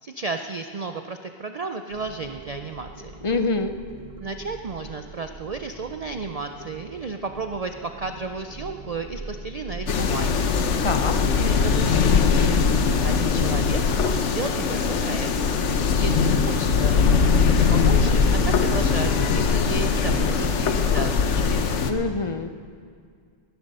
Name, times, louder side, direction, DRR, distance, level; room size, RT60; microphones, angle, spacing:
voice 1, 0.0-3.2 4.2-10.5 11.4-12.5 13.0-15.3 15.9-17.0 17.5-21.7, right 4 dB, 50° right, 7 dB, 0.4 m, -33 dB
sound 1, 1.9-20.9, right 3 dB, 30° right, 1.2 m, -42 dB
voice 2, 3.2-3.7 10.8-11.2 21.9-22.5, left 3 dB, 40° left, 8 dB, 0.5 m, -25 dB
sound 2, 9.9-21.9, left 5 dB, 70° left, 1.1 m, -21 dB
19.0 x 10.5 x 5.4 m, 2.1 s
omnidirectional pair, 1.3 m